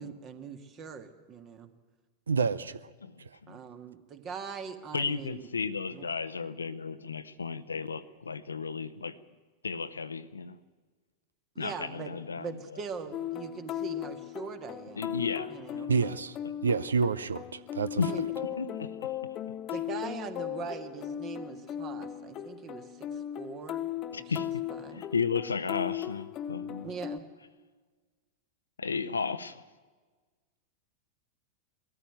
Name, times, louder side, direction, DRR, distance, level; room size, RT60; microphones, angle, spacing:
voice 1, 0.0-1.7 3.5-5.5 5.9-6.1 11.6-15.1 15.5-15.9 18.0-18.2 19.7-23.9 24.7-25.1 26.8-27.3, right 6 dB, 30° right, 8 dB, 1.7 m, -42 dB
voice 2, 2.3-2.9 3.2-3.4 15.9-16.4 16.6-18.0, right 5 dB, 70° right, 17 dB, 0.6 m, -29 dB
voice 3, 3.0-3.6 4.9-9.2 9.6-10.6 11.6-12.8 15.0-15.9 18.0-19.2 24.1-24.7 24.9-26.9 28.8-29.6, left 5 dB, 75° left, 13 dB, 0.8 m, -34 dB
sound 1, 13.1-27.2, left 11 dB, 35° left, 0.8 m, -37 dB
20.0 x 14.0 x 9.3 m, 1.4 s
figure-of-eight pair, 90°, 0 cm